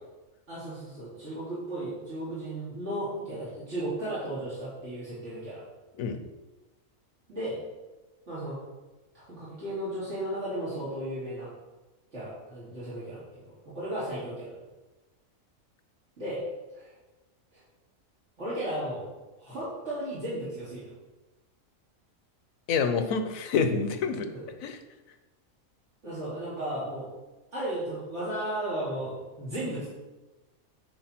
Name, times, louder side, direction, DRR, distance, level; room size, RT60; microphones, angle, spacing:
voice 1, 0.5-5.6 7.3-7.6 8.3-8.6 9.1-11.5 12.1-14.6 16.2-16.4 16.7-16.9 17.5-17.6 18.4-19.0 19.4-20.9 24.3-24.5 26.0-27.1 27.5-29.9, right 1 dB, 55° right, -11 dB, 2.9 m, -35 dB
voice 2, 22.7-24.3 24.6-24.8, left 5 dB, 80° left, 9 dB, 1.2 m, -27 dB
10.0 x 4.9 x 4.4 m, 1.1 s
omnidirectional pair, 1.4 m